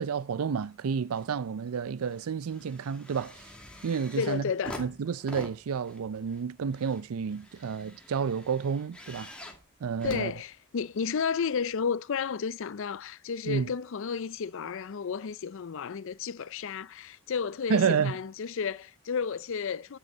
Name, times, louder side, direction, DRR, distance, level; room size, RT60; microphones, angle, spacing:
voice 1, 0.0-3.4 3.8-4.5 4.8-9.3 9.8-10.3 13.5-13.7 17.7-18.2, right 6 dB, 75° right, 0.4 m, -30 dB
sound 1, 0.6-1.3 1.7-11.1 11.8-11.9, left 1 dB, 5° left, 2.3 m, -47 dB
voice 2, 4.2-4.9 10.0-20.0, left 6 dB, 60° left, 0.4 m, -32 dB
12.5 x 6.8 x 5.5 m
head